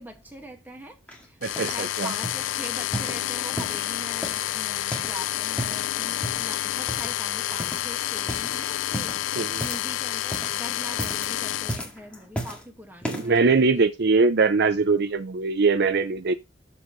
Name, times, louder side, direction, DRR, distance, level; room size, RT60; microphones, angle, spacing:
voice 1, 0.0-13.9, equal, 10° right, 1.8 m, -42 dB
sound 1, 1.1-1.8 2.2-2.5 2.9-3.9 4.2-5.2 5.5-5.9 6.2-6.5 6.9-7.3 7.6-7.9 8.2-8.5 8.9-10.0 10.2-10.6 10.9-11.3 11.7-12.6 13.0-13.4 14.0-14.1, right 1 dB, 5° left, 2.0 m, -34 dB
sound 2, 1.4-11.8, left 13 dB, 70° left, 0.3 m, -29 dB
voice 2, 1.4-2.1 9.4-9.6 13.1-16.3, right 4 dB, 55° right, 0.5 m, -22 dB
13.0 x 4.6 x 3.1 m
head